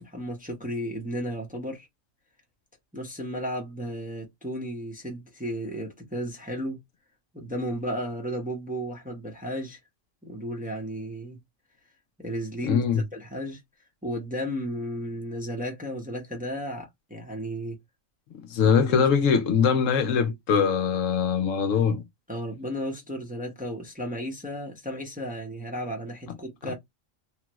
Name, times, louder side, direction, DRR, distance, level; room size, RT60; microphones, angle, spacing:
voice 1, 0.0-1.9 2.9-6.8 7.3-9.8 10.2-11.4 12.2-12.8 13.1-13.6 14.0-17.8 18.6-19.1 22.3-26.7, equal, 10° right, 0.7 m, -34 dB
voice 2, 12.6-13.0 18.3-22.0, left 6 dB, 70° left, 1.0 m, -22 dB
3.2 x 2.2 x 3.0 m
omnidirectional pair, 1.4 m